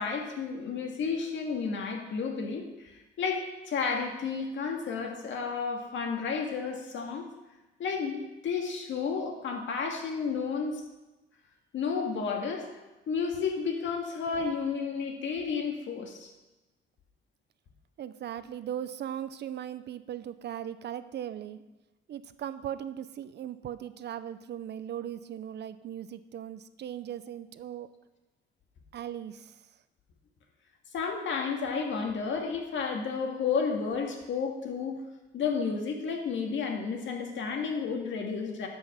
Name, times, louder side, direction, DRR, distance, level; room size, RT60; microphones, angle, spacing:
voice 1, 0.0-7.3 7.8-10.8 11.7-12.7 13.1-16.3 30.9-35.0 35.3-38.7, left 5 dB, 70° left, 2 dB, 1.9 m, -32 dB
voice 2, 18.0-21.6 22.1-27.9 28.9-29.6, right 10 dB, 60° right, 13 dB, 0.6 m, -38 dB
12.5 x 5.6 x 5.7 m, 1.1 s
cardioid pair, 90°, 20 cm